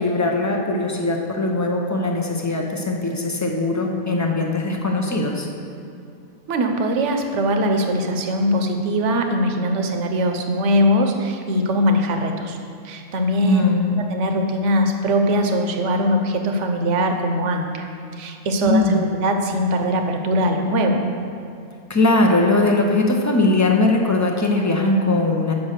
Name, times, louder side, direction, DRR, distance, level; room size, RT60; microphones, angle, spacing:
voice 1, 0.0-5.5 13.4-14.0 18.5-19.0 21.9-25.5, left 2 dB, 25° left, 1 dB, 0.4 m, -20 dB
voice 2, 6.5-12.6 12.8-13.6 14.1-17.9 18.1-21.0, equal, 65° right, 4 dB, 1.1 m, -21 dB
7.4 x 5.5 x 6.4 m, 2.4 s
omnidirectional pair, 1.4 m